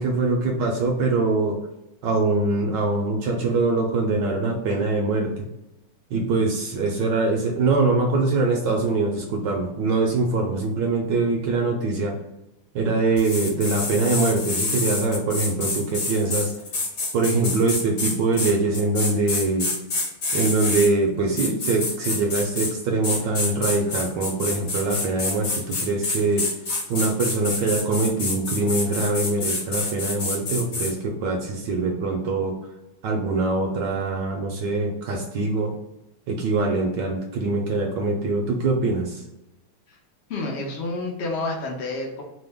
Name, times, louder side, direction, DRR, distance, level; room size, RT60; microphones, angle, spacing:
voice 1, 0.0-1.6 2.0-5.5 6.1-12.1 12.7-16.5 17.1-19.7 20.3-26.4 26.9-32.5 33.0-35.7 36.3-39.2, right 3 dB, 75° right, 1 dB, 1.1 m, -23 dB
sound 1, 13.2-20.9 21.4-22.7 23.0-30.9, left 3 dB, 50° left, 1.1 m, -28 dB
voice 2, 40.3-42.2, left 2 dB, 85° left, -1 dB, 0.6 m, -29 dB
3.2 x 2.2 x 3.4 m, 0.93 s
omnidirectional pair, 2.2 m